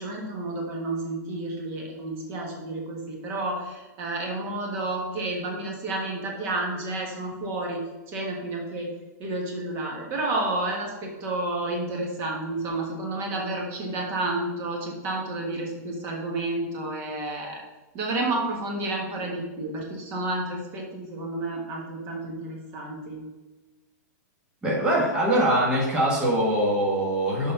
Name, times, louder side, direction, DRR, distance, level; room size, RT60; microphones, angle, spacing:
voice 1, 0.0-7.8 8.1-8.9 9.2-17.6 17.9-23.2, right 2 dB, 25° right, 0 dB, 1.5 m, -30 dB
voice 2, 24.6-27.5, right 1 dB, 10° right, -5 dB, 1.4 m, -23 dB
6.8 x 5.3 x 5.7 m, 1.2 s
supercardioid pair, 170°, 9 cm